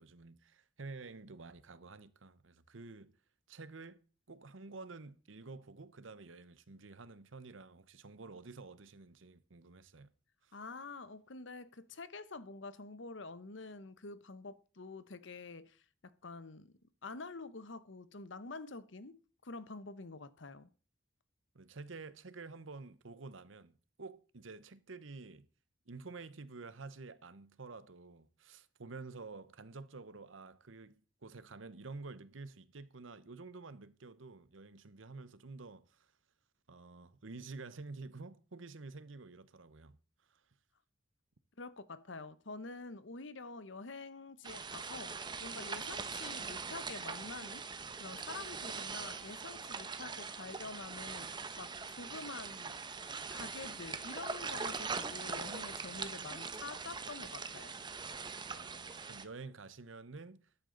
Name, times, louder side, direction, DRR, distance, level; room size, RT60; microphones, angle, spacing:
voice 1, 0.0-3.1 3.5-4.0 4.3-10.1 10.4-10.5 21.5-25.5 25.9-36.1 36.7-40.0 40.3-40.4 54.9-55.0 55.2-55.3 58.5-60.5, right 3 dB, 85° right, 0.9 m, -50 dB
voice 2, 10.5-19.2 19.4-20.7 41.6-47.7 48.0-52.8 53.3-57.7, left 3 dB, 70° left, 1.0 m, -47 dB
sound 1, 44.4-59.2, right 5 dB, 25° right, 0.8 m, -42 dB
13.5 x 11.0 x 3.9 m
head